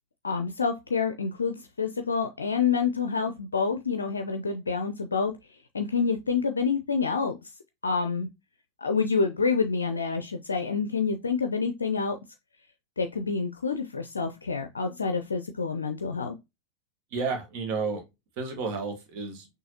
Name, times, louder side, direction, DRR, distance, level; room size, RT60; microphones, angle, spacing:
voice 1, 0.2-5.3 5.7-7.4 7.8-8.3 8.8-12.2 13.0-16.4, left 5 dB, 75° left, 0.5 m, -27 dB
voice 2, 17.1-18.0 18.4-19.5, right 4 dB, 45° right, 1.4 m, -31 dB
6.2 x 2.7 x 2.9 m
figure-of-eight pair, 90°, 0 cm